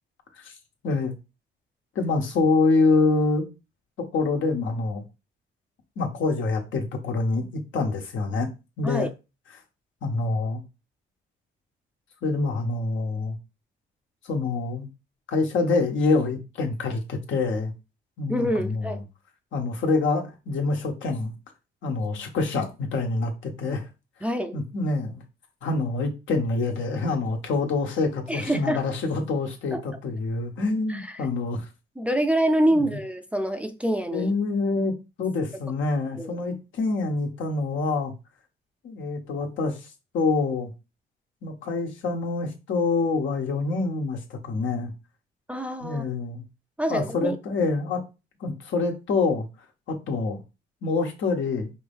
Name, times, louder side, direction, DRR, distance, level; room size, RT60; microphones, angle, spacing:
voice 1, 0.8-1.1 1.9-3.5 4.0-5.0 6.0-8.5 8.8-9.1 10.0-10.6 12.2-13.4 14.2-14.9 15.3-17.7 18.2-18.9 19.5-21.3 21.8-23.9 24.5-25.2 25.6-31.7 32.7-32.9 34.1-38.1 38.8-39.8 40.1-40.7 41.4-44.9 45.8-46.4 46.9-48.0 48.4-49.5 49.9-50.4 50.8-51.7, left 3 dB, 75° left, 1.3 m, -26 dB
voice 2, 18.3-19.0 24.2-24.6 28.3-28.8 29.7-29.8 30.9-31.2 32.0-34.3 36.2-36.4 45.5-46.0 46.8-47.4, right 1 dB, 5° right, 0.4 m, -26 dB
5.1 x 2.7 x 3.5 m
cardioid pair, 90°, 20 cm